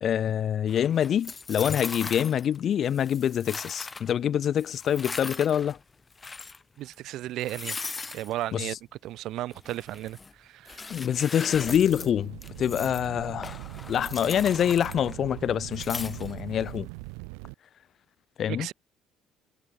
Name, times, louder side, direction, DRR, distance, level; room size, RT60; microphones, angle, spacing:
voice 1, 0.0-5.8 8.5-8.7 10.9-13.6 13.9-16.9 18.4-18.7, left 9 dB, 55° left, 1.4 m, -26 dB
sound 1, 0.7-2.6 2.8-4.1 4.6-5.8 6.1-6.6 6.9-7.0 7.4-8.3 9.5-10.3 10.7-12.1 12.4-13.1 13.4-15.4 15.7-16.6, left 4 dB, 25° left, 3.3 m, -39 dB
voice 2, 6.8-7.8 8.1-8.8 9.0-10.9 18.5-18.7, right 14 dB, 70° right, 7.0 m, -34 dB
sound 2, 11.5-17.5, right 40 dB or more, 85° right, 4.0 m, -41 dB
supercardioid pair, 70°, 0 cm